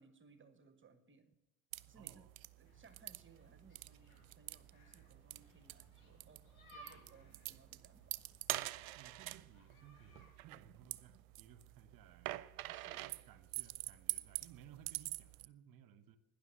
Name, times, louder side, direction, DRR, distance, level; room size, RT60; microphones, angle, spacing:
voice 1, 0.0-1.3 1.9-2.3 2.6-8.3 12.6-13.3, right 5 dB, 30° right, 10 dB, 1.4 m, -64 dB
sound 1, 1.7-15.5, right 17 dB, 75° right, 0.6 m, -46 dB
voice 2, 1.9-2.3 8.9-12.3 13.2-16.2, right 9 dB, 50° right, 12 dB, 1.3 m, -60 dB
sound 2, 2.6-10.3, right 1 dB, 85° left, 5.3 m, -64 dB
12.0 x 10.5 x 6.7 m, 0.89 s
hypercardioid pair, 60°, 42 cm